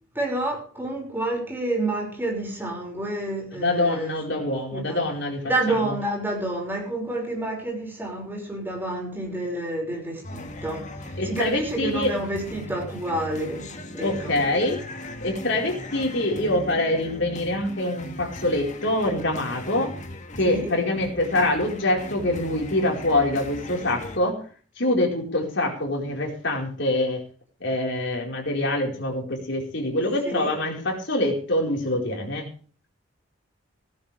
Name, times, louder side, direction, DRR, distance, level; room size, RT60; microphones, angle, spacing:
voice 1, 0.1-4.5 4.7-5.1 5.5-14.4 20.5-20.7 30.2-30.6, right 1 dB, 10° right, 5.9 m, -29 dB
voice 2, 3.5-5.9 11.2-12.1 14.0-14.8 15.2-19.9 20.3-24.4 24.8-27.2 27.6-32.5, left 1 dB, 60° left, 4.8 m, -25 dB
sound 1, 10.2-24.2, left 1 dB, 35° left, 1.9 m, -38 dB
17.0 x 14.5 x 3.5 m
head